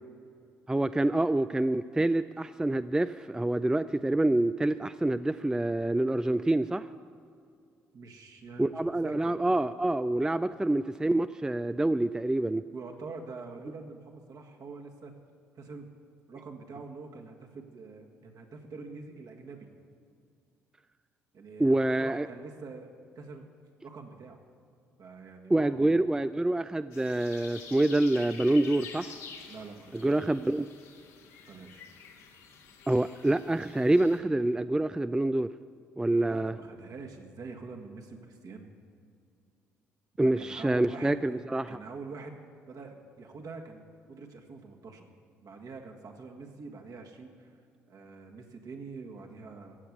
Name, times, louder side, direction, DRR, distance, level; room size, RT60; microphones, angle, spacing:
voice 1, 0.7-6.8 8.6-12.6 21.6-22.3 25.5-29.2 29.9-30.7 32.9-35.5 36.0-36.5 40.2-41.8, right 1 dB, 10° right, 12 dB, 0.4 m, -26 dB
voice 2, 7.9-9.4 12.7-15.1 15.6-15.9 16.3-19.7 21.3-22.9 23.2-23.5 23.8-24.4 25.0-26.0 29.5-30.2 31.5-31.9 36.1-38.7 40.2-41.4 41.7-42.4 42.7-43.8 44.1-45.1 45.4-47.6 47.9-49.8, right 4 dB, 55° right, 3 dB, 1.8 m, -45 dB
sound 1, 26.9-34.2, left 6 dB, 80° left, 1.5 m, -48 dB
16.0 x 7.1 x 8.2 m, 2.4 s
hypercardioid pair, 50°, 7 cm